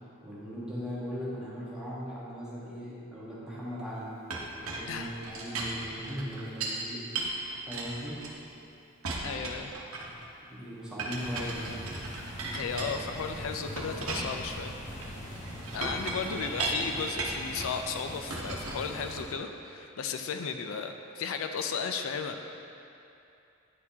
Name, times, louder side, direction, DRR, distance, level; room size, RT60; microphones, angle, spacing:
voice 1, 0.2-4.1 4.5-7.0 7.7-8.2 9.2-10.1 10.5-11.7, equal, 5° right, -9 dB, 1.2 m, -39 dB
Chink clink, 4.3-6.8 7.1-8.6 9.0-10.3 11.0-13.3 13.8-17.8 18.3-19.4, right 2 dB, 80° right, 0.9 m, -36 dB
voice 2, 9.2-9.7 12.5-14.7 15.7-22.5, left 6 dB, 70° left, 6 dB, 0.4 m, -35 dB
sound 1, 11.2-19.2, equal, 35° left, 1.3 m, -42 dB
10.0 x 4.3 x 2.8 m, 2.7 s
head